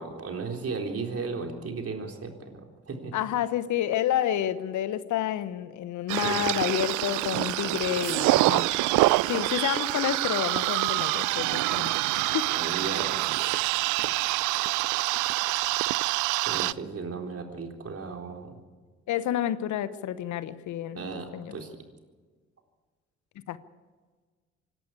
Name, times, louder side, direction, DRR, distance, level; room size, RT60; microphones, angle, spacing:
voice 1, 0.0-3.1 6.2-6.7 12.4-13.5 14.0-14.1 16.4-18.6 21.0-21.8, right 4 dB, 45° right, 2 dB, 4.0 m, -35 dB
voice 2, 3.1-8.7 9.3-11.9 12.3-12.5 19.1-21.0 21.3-21.6 23.5-23.6, left 11 dB, 65° left, 14 dB, 1.1 m, -29 dB
sound 1, 6.1-16.7, right 20 dB, 70° right, 0.5 m, -26 dB
26.0 x 12.0 x 8.4 m, 1.4 s
hypercardioid pair, 45°, 32 cm